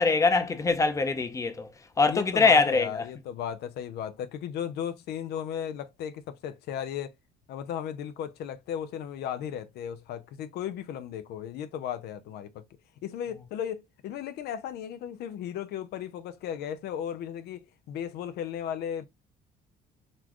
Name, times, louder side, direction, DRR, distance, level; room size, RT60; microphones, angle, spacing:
voice 1, 0.0-1.7 2.0-2.9, left 4 dB, 20° left, 0.6 m, -23 dB
voice 2, 2.1-7.1 7.5-12.6 13.0-19.1, left 9 dB, 75° left, 0.5 m, -35 dB
4.1 x 2.3 x 2.9 m
cardioid pair, 110°, 17 cm